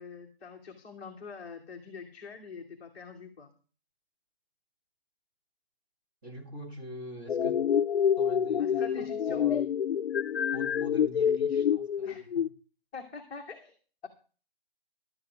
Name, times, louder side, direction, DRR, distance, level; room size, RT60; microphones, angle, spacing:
voice 1, 0.0-3.5 8.6-9.6 12.0-12.3 12.9-13.7, left 5 dB, 10° left, 1.0 m, -44 dB
voice 2, 6.2-7.6 8.2-9.6 10.5-12.5, equal, 20° right, 1.6 m, -45 dB
sound 1, 7.3-12.5, left 8 dB, 75° left, 0.6 m, -27 dB
11.5 x 5.8 x 7.9 m
hypercardioid pair, 165°, 31 cm